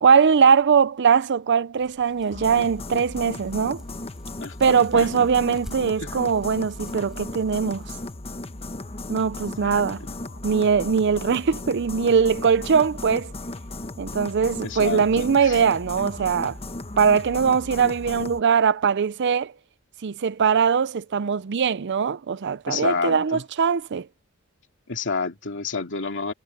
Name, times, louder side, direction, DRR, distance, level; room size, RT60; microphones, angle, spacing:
voice 1, 0.0-3.8 4.6-7.9 9.1-10.0 10.4-13.3 14.0-16.6 17.0-19.5 20.0-24.1, right 6 dB, 50° right, 0.5 m, -21 dB
sound 1, 1.8-8.1, equal, ahead, 5.0 m, -50 dB
sound 2, 2.3-18.4, left 2 dB, 25° left, 1.0 m, -36 dB
voice 2, 4.4-5.3 6.0-6.2 9.6-10.2 14.6-15.6 22.7-23.4 24.9-26.3, left 4 dB, 55° left, 2.4 m, -30 dB
head